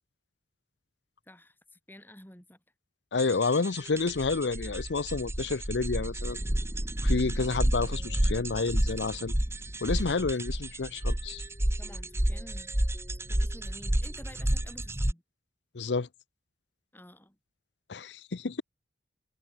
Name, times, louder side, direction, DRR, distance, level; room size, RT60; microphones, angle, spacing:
voice 1, 1.3-2.6 11.8-12.7 13.3-15.2 16.9-17.4, left 1 dB, 10° left, 5.1 m, -51 dB
voice 2, 3.1-6.4 7.0-9.3 9.8-11.4 15.7-16.1 17.9-18.6, left 4 dB, 70° left, 0.7 m, -30 dB
sound 1, 3.2-15.1, right 1 dB, 15° right, 1.1 m, -30 dB
head